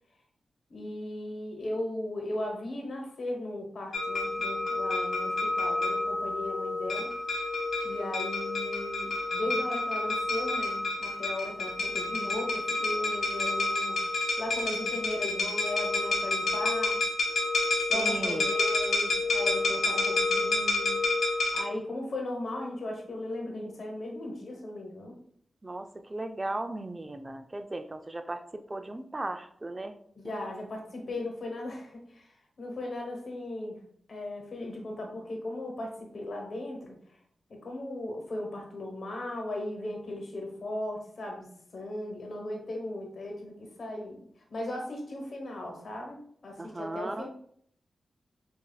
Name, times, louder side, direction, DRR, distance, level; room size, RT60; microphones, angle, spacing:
voice 1, 0.7-7.1 7.8-14.0 14.4-17.0 17.9-21.2 21.5-25.2 30.1-33.8 34.1-37.0 37.5-44.2 44.5-46.2 46.4-47.3, left 1 dB, 65° left, 1 dB, 1.1 m, -37 dB
sound 1, 3.9-21.6, left 2 dB, 85° left, 1.0 m, -29 dB
voice 2, 17.9-18.5 25.6-29.9 30.2-30.3 46.6-47.3, right 2 dB, 30° right, 8 dB, 0.4 m, -36 dB
5.3 x 2.6 x 2.3 m, 0.65 s
cardioid pair, 55°, 0 cm